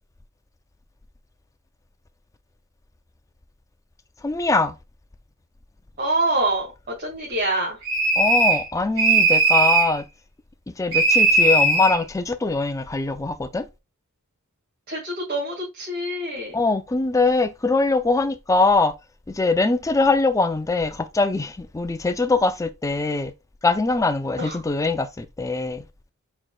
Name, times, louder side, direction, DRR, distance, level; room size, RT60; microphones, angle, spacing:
voice 1, 4.2-4.7 8.2-10.0 10.8-13.7 16.5-18.9 19.3-23.3 23.6-25.8, left 3 dB, 15° left, 0.4 m, -22 dB
voice 2, 6.0-6.7 7.0-7.8 14.9-16.5 24.4-24.6, right 2 dB, 45° right, 2.2 m, -25 dB
sound 1, 7.8-8.7 9.0-9.9 10.9-12.0, right 3 dB, 65° right, 1.4 m, -18 dB
4.5 x 4.5 x 2.3 m
head